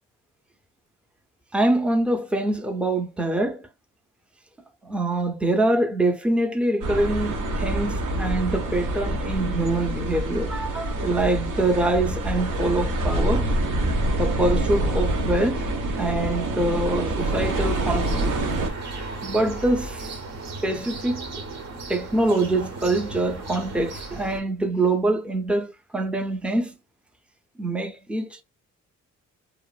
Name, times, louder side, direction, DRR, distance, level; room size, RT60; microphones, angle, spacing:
voice 1, 1.5-3.7 4.8-13.5 14.2-15.7 16.0-18.3 19.2-20.1 20.6-21.3 21.9-26.7 27.6-28.4, right 2 dB, 5° right, 0.5 m, -24 dB
sound 1, 6.8-18.7, right 1 dB, 90° right, 1.0 m, -26 dB
sound 2, 17.2-24.4, right 3 dB, 60° right, 0.9 m, -36 dB
2.8 x 2.4 x 2.3 m
cardioid pair, 100°, 31 cm